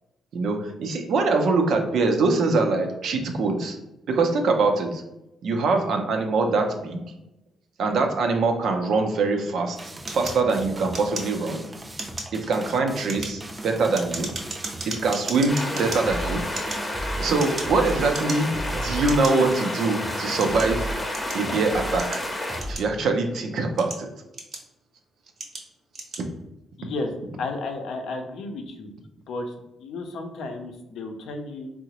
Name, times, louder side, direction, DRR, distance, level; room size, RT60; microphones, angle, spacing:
voice 1, 0.3-3.8 4.1-5.0 5.4-7.0 7.8-9.8 10.1-11.6 12.3-14.3 14.9-16.4 17.2-20.9 21.3-22.2 22.7-24.1, right 3 dB, 75° right, 4 dB, 0.5 m, -23 dB
sound 1, 9.7-22.7, right 1 dB, 20° right, 0.4 m, -36 dB
sound 2, 10.1-11.6 11.9-12.4 12.9-16.0 16.5-17.8 18.1-18.6 19.1-19.3 20.0-21.5 22.0-23.2 23.6-24.8 25.4-25.7 25.9-26.3, right 3 dB, 55° right, 0.9 m, -35 dB
sound 3, 15.5-22.6, left 1 dB, 15° left, 0.6 m, -31 dB
voice 2, 26.8-27.1 27.4-28.9 29.3-31.7, left 3 dB, 80° left, 4 dB, 0.5 m, -33 dB
3.7 x 2.0 x 2.8 m, 0.92 s
cardioid pair, 75°, 0 cm